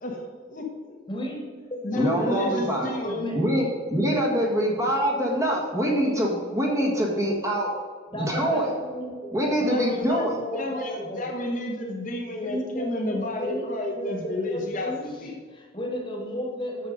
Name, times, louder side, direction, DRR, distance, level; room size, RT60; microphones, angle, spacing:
voice 1, 0.0-1.0 1.8-3.3 9.6-10.3 10.5-15.4, left 1 dB, 40° left, 0 dB, 1.1 m, -31 dB
voice 2, 1.1-3.4 8.1-9.3 9.6-11.3 12.4-13.7 13.9-16.9, left 1 dB, 25° left, 1 dB, 1.6 m, -34 dB
voice 3, 1.9-2.9 3.3-7.7 8.1-8.6 9.3-10.3, equal, 15° right, -2 dB, 1.5 m, -24 dB
8.4 x 7.0 x 5.2 m, 1.5 s
head